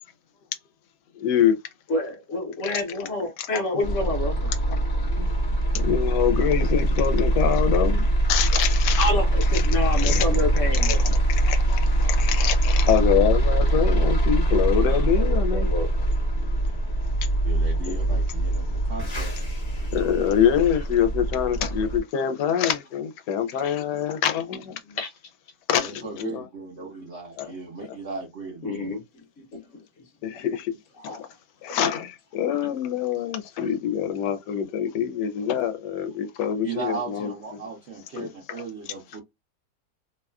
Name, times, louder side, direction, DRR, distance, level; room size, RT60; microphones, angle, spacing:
voice 1, 1.2-1.6 2.7-2.8 5.2-5.3 5.7-9.1 9.5-10.3 10.7-11.0 11.3-15.7 18.1-18.2 19.9-24.7 25.7-26.4 27.4-27.5 30.2-30.7 31.6-37.3 38.2-38.3, left 9 dB, 85° left, 1.2 m, -25 dB
voice 2, 1.9-4.5 9.0-11.1 15.2-15.9 19.8-19.9 24.9-25.1 28.6-29.0 29.5-29.6 31.1-31.2, left 2 dB, 55° left, 1.2 m, -28 dB
sound 1, 3.8-22.0, right 1 dB, 35° left, 0.7 m, -23 dB
voice 3, 17.4-19.3 25.8-29.0 36.6-39.2, right 4 dB, 55° right, 0.9 m, -36 dB
3.0 x 2.3 x 2.2 m
omnidirectional pair, 1.8 m